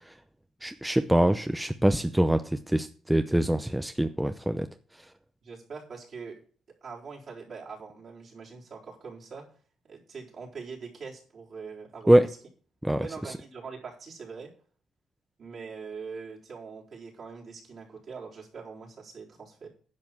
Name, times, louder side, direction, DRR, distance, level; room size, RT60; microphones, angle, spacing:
voice 1, 0.6-4.7 12.1-12.3 12.8-13.1, right 1 dB, 5° right, 9 dB, 0.6 m, -24 dB
voice 2, 5.4-6.4 6.8-9.5 9.8-12.4 13.0-14.5 15.4-19.7, right 5 dB, 55° right, -3 dB, 4.0 m, -43 dB
10.5 x 5.4 x 7.2 m, 0.44 s
cardioid pair, 90°, 0 cm